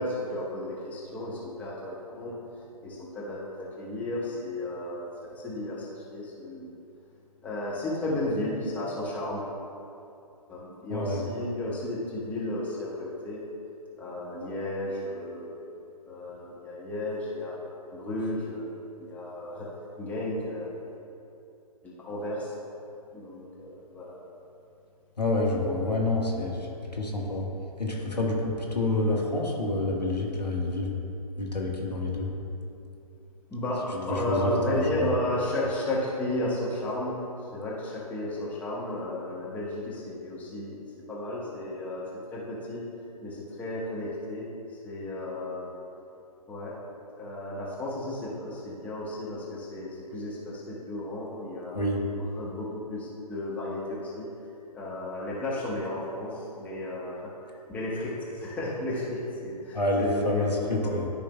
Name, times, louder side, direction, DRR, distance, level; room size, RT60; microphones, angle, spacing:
voice 1, 0.0-2.3 2.8-5.0 5.3-6.7 7.4-9.4 10.5-13.4 14.0-15.6 16.1-17.6 17.9-18.7 19.0-19.7 20.0-20.7 21.8-22.5 23.1-24.1 33.5-37.1 37.5-40.8 41.1-42.0 42.3-42.8 43.2-44.4 44.8-45.7 46.5-46.7 47.2-51.8 52.4-54.2 54.7-57.3 57.7-61.1, left 1 dB, 5° left, -7 dB, 1.0 m, -33 dB
voice 2, 10.9-11.2 25.2-26.7 26.9-27.5 27.8-31.0 31.4-32.3 33.9-35.1 51.7-52.0 59.7-61.1, left 2 dB, 85° left, -2 dB, 1.5 m, -28 dB
13.0 x 5.0 x 2.3 m, 2.7 s
figure-of-eight pair, 130°, 21 cm